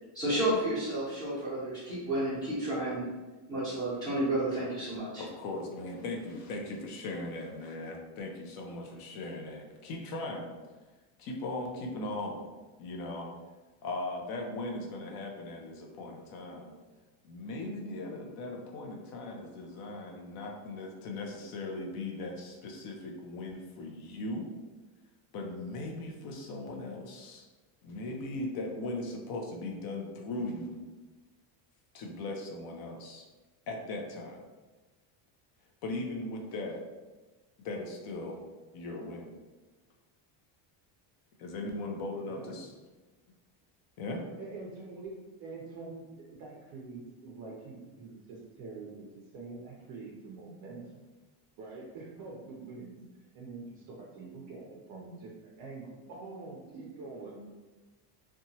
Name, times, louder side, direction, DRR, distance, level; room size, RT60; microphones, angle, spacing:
voice 1, 0.1-3.1 3.5-5.2, right 1 dB, 10° left, -10 dB, 0.7 m, -31 dB
voice 2, 5.2-10.6 11.2-12.5 12.8-13.3 13.8-16.7 17.2-24.5 25.3-27.5 27.8-30.8 31.9-33.3 33.7-34.4 35.8-36.9 37.6-38.4 38.7-39.3 41.4-42.7 44.0-44.3, left 2 dB, 50° left, 1 dB, 0.5 m, -38 dB
voice 3, 44.4-49.1 49.3-51.0 51.6-53.0 53.3-57.5, right 3 dB, 45° right, -4 dB, 0.4 m, -45 dB
2.8 x 2.2 x 2.7 m, 1.2 s
cardioid pair, 180°, 49 cm